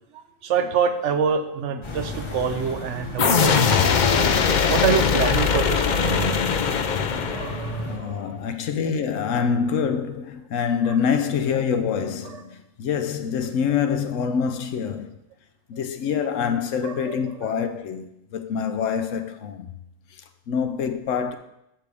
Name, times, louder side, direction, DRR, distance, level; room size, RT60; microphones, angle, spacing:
voice 1, 0.1-3.9 4.6-6.4 7.3-8.3 10.9-11.0 12.3-12.4 16.8-17.5, right 6 dB, 70° right, 1.0 m, -26 dB
sound 1, 1.8-8.0, left 2 dB, 25° left, 0.9 m, -34 dB
sound 2, 3.2-7.9, left 6 dB, 55° left, 0.5 m, -21 dB
voice 2, 7.8-15.2 15.7-19.7 20.1-21.4, left 7 dB, 75° left, 1.0 m, -26 dB
8.0 x 7.4 x 3.5 m
omnidirectional pair, 1.3 m